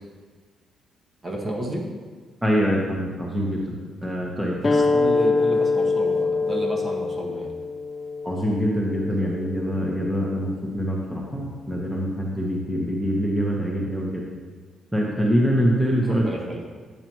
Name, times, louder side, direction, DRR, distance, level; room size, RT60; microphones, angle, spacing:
voice 1, 1.2-1.8 4.6-7.5 14.0-14.1 16.0-16.7, right 1 dB, 35° right, -1 dB, 1.6 m, -31 dB
voice 2, 2.4-3.6 4.0-4.8 8.2-14.2 14.9-16.3, equal, 5° right, -3 dB, 1.2 m, -24 dB
sound 1, 4.6-9.8, left 3 dB, 30° left, 0.5 m, -24 dB
8.6 x 6.8 x 3.1 m, 1.5 s
cardioid pair, 90°, 0 cm